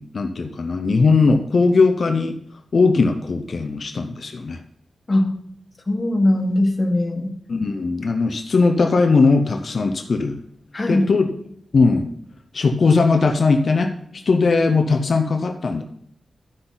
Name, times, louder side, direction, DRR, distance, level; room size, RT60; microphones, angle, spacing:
voice 1, 0.0-2.3 2.7-4.6 7.5-10.4 10.9-11.3 11.7-12.1 12.5-15.8, left 4 dB, 50° left, 5 dB, 0.7 m, -19 dB
voice 2, 5.9-7.3 10.7-11.1, left 1 dB, 25° left, 1 dB, 1.6 m, -20 dB
13.0 x 6.0 x 4.0 m, 0.69 s
wide cardioid pair, 135°, 0 cm